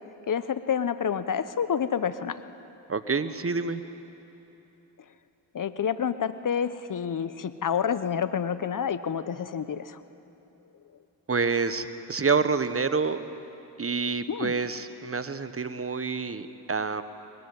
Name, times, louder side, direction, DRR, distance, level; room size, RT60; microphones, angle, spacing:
voice 1, 0.3-2.4 5.5-10.0 14.3-14.5, left 7 dB, 45° left, 13 dB, 0.9 m, -28 dB
voice 2, 2.9-3.8 11.3-13.2 13.8-17.0, right 4 dB, 30° right, 11 dB, 1.2 m, -27 dB
21.5 x 15.0 x 9.7 m, 3.0 s
supercardioid pair, 45°, 44 cm